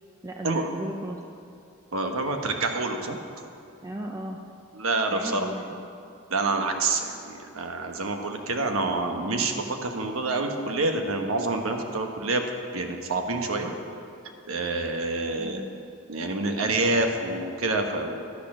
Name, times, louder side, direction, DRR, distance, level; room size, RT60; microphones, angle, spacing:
voice 1, 0.2-1.2 3.8-4.4 5.1-5.7 15.4-15.7, right 1 dB, 15° right, 1 dB, 0.6 m, -35 dB
voice 2, 1.9-3.2 4.7-5.5 6.3-12.4 12.7-13.7 14.5-15.6 16.1-18.3, right 2 dB, 90° right, 4 dB, 1.1 m, -27 dB
11.0 x 8.8 x 6.1 m, 2.5 s
head